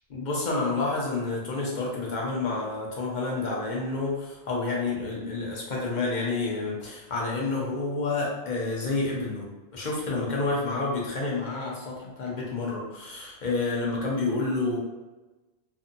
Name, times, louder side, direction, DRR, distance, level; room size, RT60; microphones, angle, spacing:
voice 1, 0.1-9.5 9.7-14.8, left 3 dB, 50° left, -3 dB, 0.8 m, -29 dB
2.7 x 2.5 x 2.5 m, 1.1 s
omnidirectional pair, 1.0 m